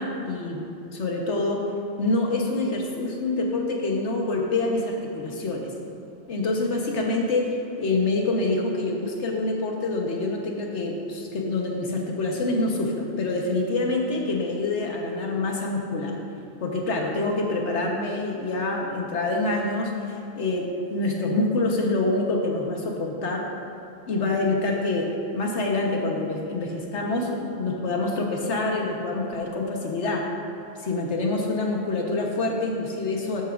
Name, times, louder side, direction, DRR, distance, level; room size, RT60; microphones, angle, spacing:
voice 1, 0.0-1.6 2.0-5.7 6.3-16.1 16.6-19.9 20.3-23.4 24.1-30.3 30.8-33.4, left 2 dB, 85° left, 0 dB, 1.5 m, -26 dB
13.0 x 9.1 x 2.6 m, 2.9 s
omnidirectional pair, 1.2 m